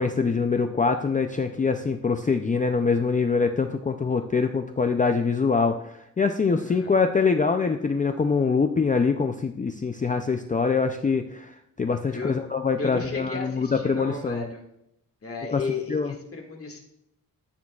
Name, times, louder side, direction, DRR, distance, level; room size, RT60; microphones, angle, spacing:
voice 1, 0.0-14.4 15.5-15.6 15.9-16.1, left 5 dB, 25° left, 6 dB, 0.4 m, -24 dB
voice 2, 6.6-6.9 12.1-12.3 12.8-14.6 15.2-16.8, left 4 dB, 40° left, 1 dB, 2.0 m, -34 dB
13.5 x 8.7 x 2.4 m, 0.78 s
wide cardioid pair, 115°, 35 cm